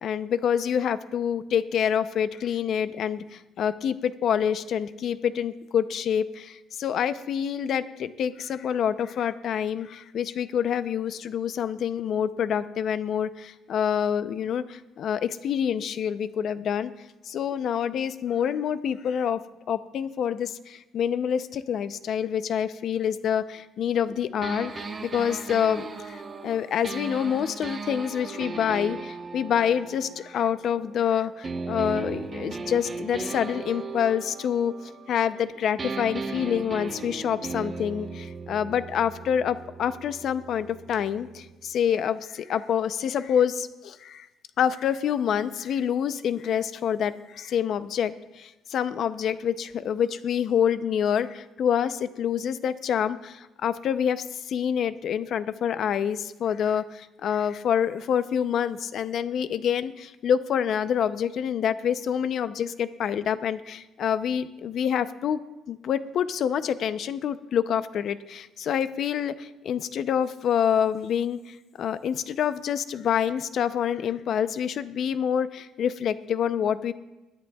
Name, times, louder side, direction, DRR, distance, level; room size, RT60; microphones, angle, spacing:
voice 1, 0.0-16.9 17.2-19.4 19.7-44.3 44.6-65.4 65.7-76.9, left 8 dB, 60° left, 13 dB, 0.6 m, -27 dB
sound 1, 24.4-31.0 31.4-35.5 35.8-41.5, right 4 dB, 30° right, 1.0 m, -37 dB
22.0 x 10.5 x 2.3 m, 1.0 s
cardioid pair, 125°, 0 cm